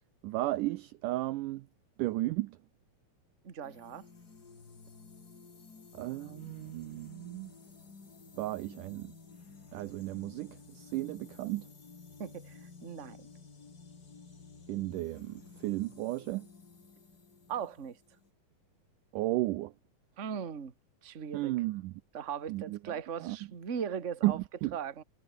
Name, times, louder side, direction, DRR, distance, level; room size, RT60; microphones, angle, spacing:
voice 1, 0.2-1.7 2.0-2.6 5.9-7.5 8.4-9.1 9.7-11.7 14.7-16.5 19.1-19.7 21.3-21.9 22.5-23.0 23.2-23.4 24.2-24.8, right 18 dB, 80° right, 1.9 m, -34 dB
voice 2, 3.4-4.0 12.2-13.3 17.5-18.0 20.2-20.7 21.0-21.5 22.1-24.4 24.7-25.0, right 7 dB, 30° right, 1.3 m, -38 dB
sound 1, 3.6-18.3, left 4 dB, 30° left, 2.8 m, -53 dB
omnidirectional pair, 4.3 m